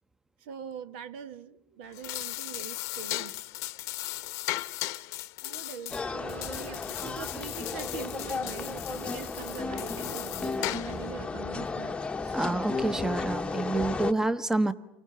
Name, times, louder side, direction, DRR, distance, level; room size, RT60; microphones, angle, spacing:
voice 1, 0.4-3.4 5.4-12.4, right 8 dB, 60° right, 1.2 m, -43 dB
sound 1, 1.8-11.1, left 18 dB, 55° left, 0.9 m, -37 dB
sound 2, 5.9-14.1, left 4 dB, 15° left, 1.0 m, -34 dB
voice 2, 12.3-14.7, right 2 dB, 10° right, 1.0 m, -28 dB
29.5 x 24.0 x 5.7 m
figure-of-eight pair, 75°, 6 cm